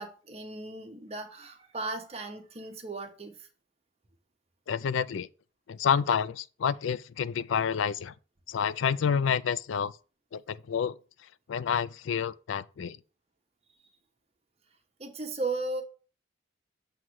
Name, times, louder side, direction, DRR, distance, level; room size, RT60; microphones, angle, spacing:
voice 1, 0.0-3.5 15.0-15.8, right 3 dB, 35° right, 1.1 m, -36 dB
voice 2, 4.7-5.3 5.7-8.1 8.5-9.9 10.3-11.0 11.5-13.0, left 7 dB, 85° left, 0.4 m, -29 dB
7.6 x 3.1 x 6.2 m
head